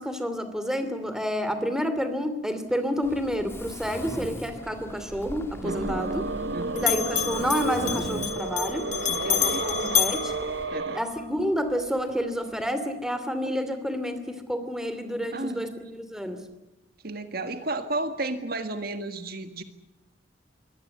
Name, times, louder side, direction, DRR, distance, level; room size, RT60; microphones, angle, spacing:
voice 1, 0.0-6.2 6.7-8.9 9.3-10.3 10.9-16.4, equal, 5° right, 9 dB, 2.7 m, -29 dB
Mechanisms, 3.0-10.6, equal, 15° left, 2.5 m, -41 dB
Bell, 5.1-6.5 6.8-11.2, left 10 dB, 45° left, 2.7 m, -29 dB
voice 2, 5.6-6.1 6.5-6.9 9.1-9.7 10.7-11.0 15.3-15.9 17.0-19.6, right 2 dB, 60° right, 8 dB, 1.8 m, -33 dB
sound 1, 5.6-11.0, right 3 dB, 90° right, 1.0 m, -31 dB
23.5 x 18.0 x 9.5 m, 0.92 s
head